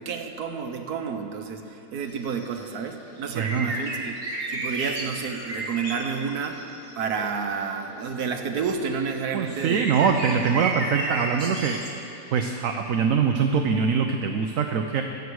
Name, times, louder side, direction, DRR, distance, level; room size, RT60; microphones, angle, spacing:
voice 1, 0.0-4.2 4.5-6.6 6.9-10.1 10.5-10.7, right 6 dB, 85° right, 5 dB, 1.5 m, -30 dB
sound 1, 2.0-7.5 7.8-12.5, right 2 dB, 35° right, 2.1 m, -34 dB
voice 2, 3.3-3.7 9.3-12.0 12.3-15.0, right 6 dB, 65° right, 4 dB, 1.1 m, -23 dB
24.5 x 8.1 x 4.8 m, 2.7 s
omnidirectional pair, 1.6 m